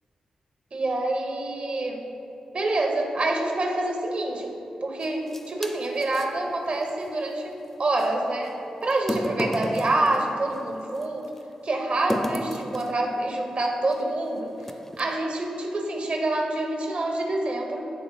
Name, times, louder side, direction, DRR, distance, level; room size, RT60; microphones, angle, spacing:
voice 1, 0.7-2.0 2.5-4.5 4.8-11.3 11.6-14.6 15.0-17.9, right 2 dB, 55° right, 2 dB, 0.9 m, -27 dB
sound 1, 5.0-6.3 8.0-8.1 8.9-11.0 12.1-13.1 13.9-14.1 14.6-15.1, equal, 10° left, 0.4 m, -32 dB
9.3 x 3.4 x 4.0 m, 2.9 s
supercardioid pair, 45°, 2 cm